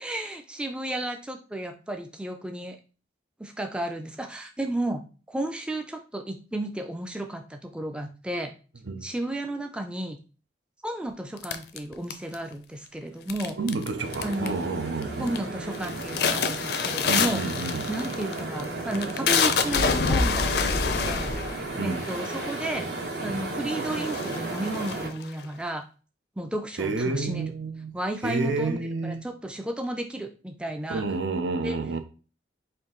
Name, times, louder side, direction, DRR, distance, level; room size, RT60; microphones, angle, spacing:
voice 1, 0.0-2.8 3.4-5.0 5.3-8.5 9.0-10.2 10.8-13.6 14.2-14.6 15.2-17.4 17.9-20.5 21.0-21.3 21.6-22.9 23.2-25.8 26.4-27.5 27.9-31.0 31.6-31.8, right 1 dB, 5° right, 0.3 m, -33 dB
sound 1, 11.4-12.5 13.3-13.9 14.1-14.6 15.0-15.4 15.7-22.8 23.5-23.6 23.8-25.4, left 5 dB, 60° left, 0.4 m, -27 dB
voice 2, 13.6-15.3 17.1-17.9 21.8-22.1 26.8-27.9 28.2-29.2 30.9-32.0, right 3 dB, 85° right, 0.6 m, -29 dB
sound 2, 13.9-25.1, right 2 dB, 65° right, 1.0 m, -34 dB
4.5 x 2.6 x 3.8 m
head